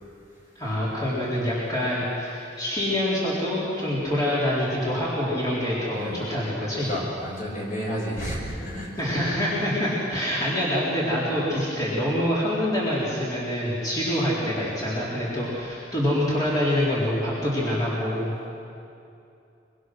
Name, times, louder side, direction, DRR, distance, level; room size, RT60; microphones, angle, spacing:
voice 1, 0.6-6.9 9.0-18.3, left 1 dB, 20° left, -8 dB, 4.2 m, -26 dB
voice 2, 6.8-9.2, equal, 50° left, -3 dB, 6.7 m, -32 dB
24.5 x 24.0 x 6.4 m, 2.7 s
head